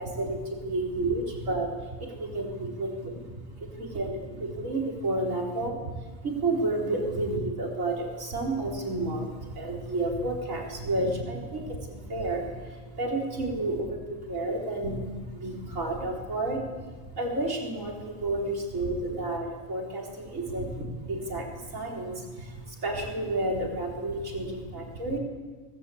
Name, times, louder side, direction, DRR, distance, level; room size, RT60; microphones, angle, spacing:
voice 1, 0.0-16.9 17.1-25.2, right 2 dB, 65° right, -1 dB, 4.5 m, -31 dB
24.0 x 19.0 x 8.6 m, 1.4 s
omnidirectional pair, 1.5 m